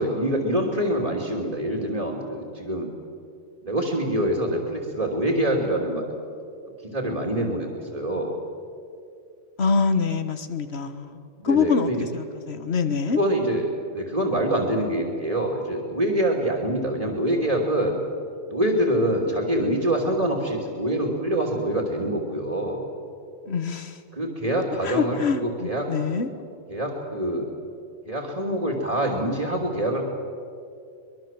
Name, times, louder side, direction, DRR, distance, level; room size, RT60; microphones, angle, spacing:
voice 1, 0.0-2.9 3.6-6.0 6.9-8.4 11.4-12.0 13.1-13.6 13.9-18.0 18.5-22.9 24.1-26.3 26.7-27.5 28.1-30.0, right 1 dB, 35° right, 0 dB, 3.1 m, -25 dB
voice 2, 9.6-13.2 23.5-24.0 24.8-26.3, left 5 dB, 70° left, 10 dB, 1.6 m, -25 dB
24.0 x 22.0 x 7.6 m, 2.5 s
omnidirectional pair, 1.2 m